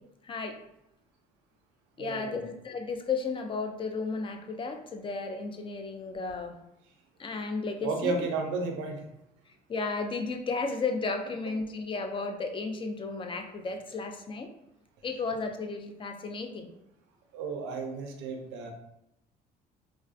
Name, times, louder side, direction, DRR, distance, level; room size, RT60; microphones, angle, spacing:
voice 1, 0.2-0.6 2.0-6.6 7.2-8.1 9.7-14.5 15.0-16.7, left 4 dB, 25° left, 5 dB, 0.4 m, -33 dB
voice 2, 2.0-2.4 7.8-9.0 17.3-18.7, right 4 dB, 70° right, 3 dB, 0.5 m, -33 dB
2.3 x 2.3 x 2.4 m, 0.83 s
hypercardioid pair, 70°, 19 cm